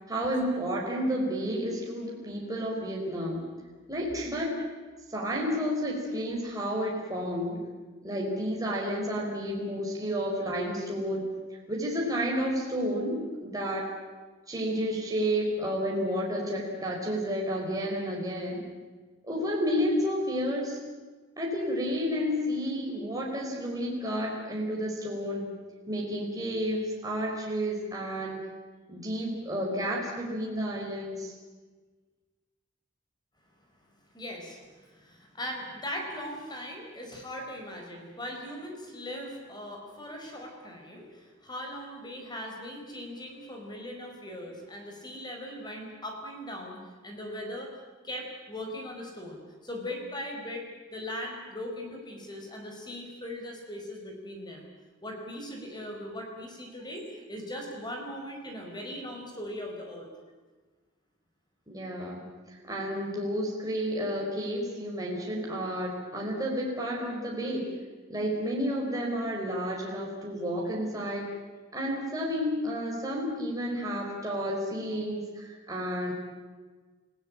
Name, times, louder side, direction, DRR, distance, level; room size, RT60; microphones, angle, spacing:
voice 1, 0.1-3.4 3.9-4.5 5.1-7.6 8.0-11.3 11.7-13.9 14.5-18.6 19.3-20.8 21.4-25.5 25.9-28.4 28.9-31.3 61.7-62.3 62.7-67.7 68.1-71.3 71.7-76.1, equal, 20° right, -3 dB, 4.8 m, -31 dB
voice 2, 34.1-47.7 48.0-54.7 55.0-60.1, left 1 dB, 20° left, 2 dB, 4.7 m, -39 dB
29.0 x 17.0 x 8.9 m, 1.4 s
head